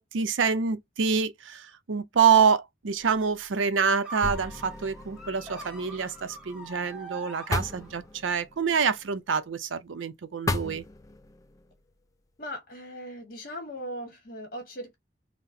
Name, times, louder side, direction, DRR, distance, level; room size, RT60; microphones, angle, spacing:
voice 1, 0.0-10.8, right 6 dB, 85° right, 0.5 m, -26 dB
sound 1, 3.0-3.5 4.2-7.1 7.5-9.1 10.5-11.7, left 2 dB, 15° left, 0.3 m, -36 dB
sound 2, 4.0-8.2, right 1 dB, 5° right, 0.9 m, -43 dB
voice 2, 12.4-14.9, equal, 50° left, 1.4 m, -39 dB
5.6 x 2.1 x 2.6 m
head